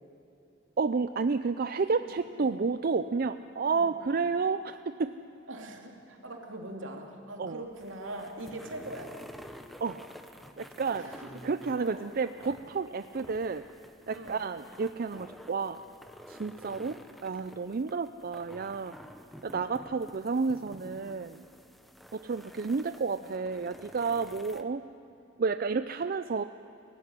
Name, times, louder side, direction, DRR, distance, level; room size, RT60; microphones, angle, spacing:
voice 1, 0.8-5.1 7.4-7.6 9.8-10.0 10.6-11.1 11.4-13.6 14.1-15.8 16.3-18.9 19.4-21.4 22.1-24.8 25.4-26.4, right 4 dB, 50° right, 11 dB, 0.5 m, -31 dB
voice 2, 5.5-9.2 10.9-11.4 11.8-12.1 14.1-14.4 23.1-23.2, right 1 dB, 75° right, 2 dB, 2.9 m, -42 dB
sound 1, 7.6-24.6, equal, ahead, 1.0 m, -50 dB
23.0 x 16.0 x 9.8 m, 2.9 s
head